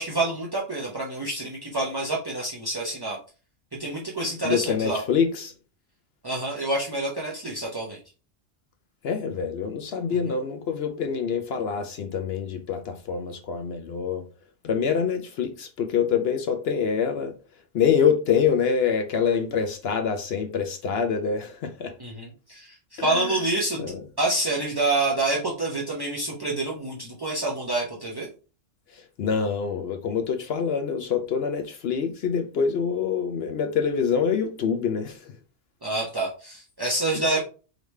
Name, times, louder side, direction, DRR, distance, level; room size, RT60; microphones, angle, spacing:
voice 1, 0.0-3.2 3.7-5.0 6.2-8.0 22.0-23.8 24.2-28.3 35.8-37.4, right 2 dB, 25° right, 0.6 m, -27 dB
voice 2, 4.4-5.5 9.0-14.2 14.6-17.3 17.7-21.9 23.0-23.3 23.8-24.0 29.2-35.2, left 6 dB, 60° left, 0.7 m, -25 dB
5.0 x 3.1 x 3.2 m
omnidirectional pair, 1.4 m